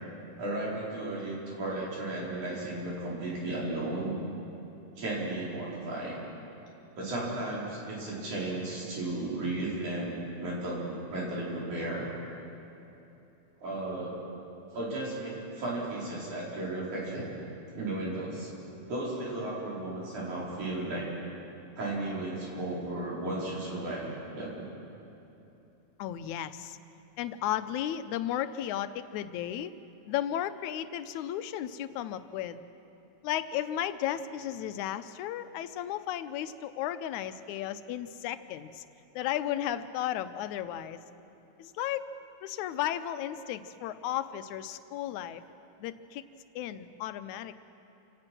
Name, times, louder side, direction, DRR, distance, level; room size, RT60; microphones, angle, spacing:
voice 1, 0.4-4.1 5.0-6.2 7.0-10.1 10.4-12.1 13.6-14.2 14.7-17.3 17.7-18.5 18.9-21.1 21.8-24.6, right 2 dB, 90° right, -5 dB, 6.0 m, -34 dB
voice 2, 26.0-26.8 27.2-29.7 30.1-32.6 33.2-38.8 39.2-41.0 41.6-42.1 42.4-45.4 45.8-46.2 46.6-47.6, left 11 dB, 85° left, 12 dB, 2.1 m, -34 dB
27.5 x 17.5 x 6.1 m, 2.9 s
omnidirectional pair, 3.3 m